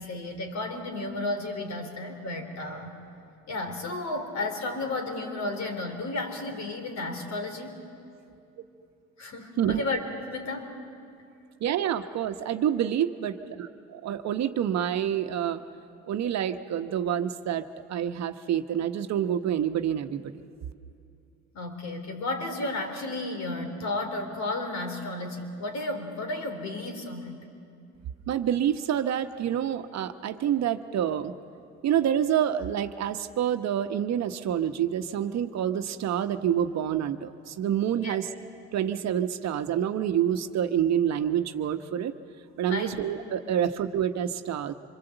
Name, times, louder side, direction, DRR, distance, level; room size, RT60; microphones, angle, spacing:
voice 1, 0.0-3.0 3.5-7.8 9.2-10.0 10.3-10.7 21.5-27.4 38.0-38.2 42.7-43.0, left 2 dB, 55° left, 5 dB, 4.0 m, -33 dB
voice 2, 11.6-13.3 14.0-15.6 16.1-20.3 28.3-31.3 31.8-38.3 38.7-42.1 42.6-44.7, right 10 dB, 55° right, 8 dB, 1.1 m, -27 dB
26.0 x 22.5 x 8.0 m, 2.5 s
supercardioid pair, 85°, 32 cm